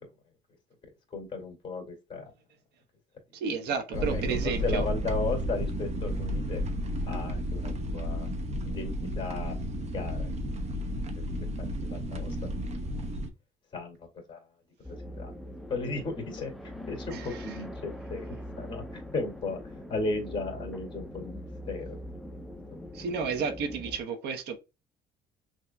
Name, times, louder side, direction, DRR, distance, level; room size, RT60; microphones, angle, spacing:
voice 1, 1.1-2.3 3.7-6.6 7.0-8.3 8.6-9.6 9.9-10.3 11.6-12.4 13.7-14.4 15.2-15.3 15.7-16.5 16.9-18.3 18.6-19.6 19.9-22.0, left 3 dB, 30° left, 2.1 m, -35 dB
voice 2, 3.3-4.8 17.1-17.6 22.9-24.6, right 5 dB, 75° right, 0.9 m, -32 dB
sound 1, 3.9-13.3, equal, 40° right, 0.8 m, -32 dB
sound 2, 14.8-24.0, left 1 dB, ahead, 0.5 m, -42 dB
5.9 x 2.7 x 2.2 m
cardioid pair, 110°, 17 cm